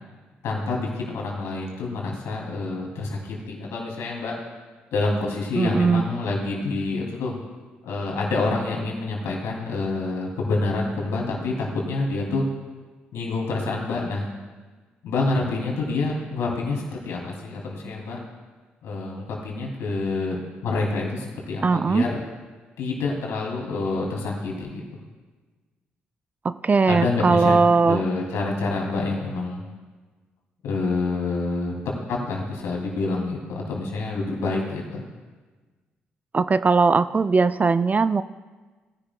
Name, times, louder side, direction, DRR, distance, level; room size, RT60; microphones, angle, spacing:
voice 1, 0.4-4.4 4.9-7.3 7.8-12.5 13.1-14.3 15.0-18.2 18.8-20.4 20.6-22.2 22.8-24.8 26.8-27.6 27.9-29.6 30.6-31.7 32.1-35.0, left 3 dB, 70° left, -1 dB, 2.7 m, -27 dB
voice 2, 5.6-6.1 21.6-22.0 26.4-28.0 36.3-38.2, right 4 dB, 35° right, 14 dB, 0.4 m, -19 dB
17.5 x 10.5 x 2.2 m, 1.3 s
hypercardioid pair, 45°, 5 cm